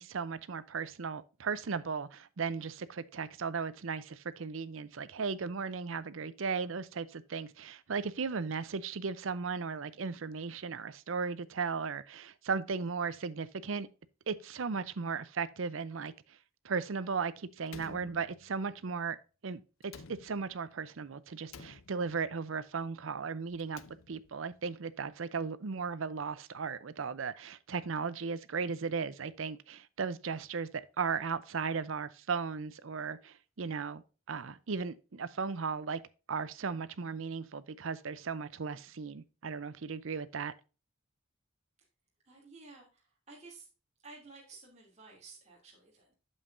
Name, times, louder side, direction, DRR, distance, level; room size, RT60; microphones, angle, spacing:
voice 1, 0.0-13.9 14.3-16.1 16.6-19.2 19.4-23.8 24.1-34.0 34.3-36.0 36.3-40.5, right 5 dB, 70° right, 0.6 m, -36 dB
Slam, 17.7-18.8 19.8-20.7 21.5-22.4 23.5-24.5, left 5 dB, 80° left, 0.7 m, -52 dB
voice 2, 42.2-43.7 44.0-46.1, right 3 dB, 35° right, 2.7 m, -53 dB
8.5 x 7.3 x 2.6 m
head